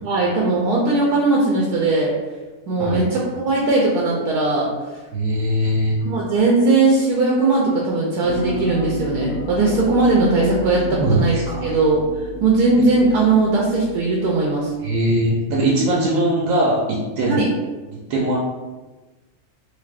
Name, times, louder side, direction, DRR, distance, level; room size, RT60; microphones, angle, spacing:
voice 1, 0.0-2.1 2.7-4.7 6.0-11.3 11.6-12.0 12.4-14.7 17.3-17.5, right 3 dB, 85° right, -3 dB, 1.2 m, -18 dB
voice 2, 5.1-6.0 10.9-11.4 12.7-12.8 14.8-17.4 17.9-18.4, right 1 dB, 65° right, -4 dB, 1.0 m, -20 dB
sound 1, 8.2-14.3 14.7-14.8, left 1 dB, 75° left, 1.1 m, -32 dB
3.3 x 3.3 x 2.4 m, 1.2 s
omnidirectional pair, 1.6 m